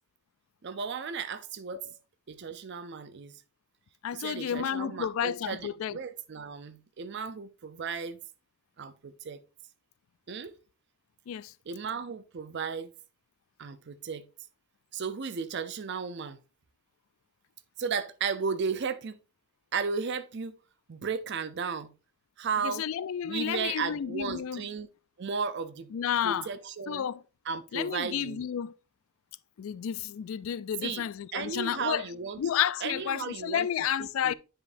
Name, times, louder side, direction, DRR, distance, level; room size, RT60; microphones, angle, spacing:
voice 1, 0.6-1.8 2.3-3.4 4.1-8.2 8.8-9.4 10.3-10.5 11.7-12.9 13.6-14.3 14.9-16.4 17.8-19.2 19.7-20.5 20.9-21.9 22.4-22.8 23.2-24.9 25.2-25.9 26.2-27.1 27.5-28.4 30.8-31.0 31.3-32.4 32.8-33.7 34.0-34.3, right 5 dB, 55° right, 0.5 m, -34 dB
voice 2, 4.0-6.0 11.3-11.5 22.6-24.7 25.9-26.5 26.9-27.2 27.7-28.7 29.6-32.0 32.4-34.3, left 9 dB, 70° left, 0.3 m, -31 dB
9.7 x 5.0 x 2.6 m
head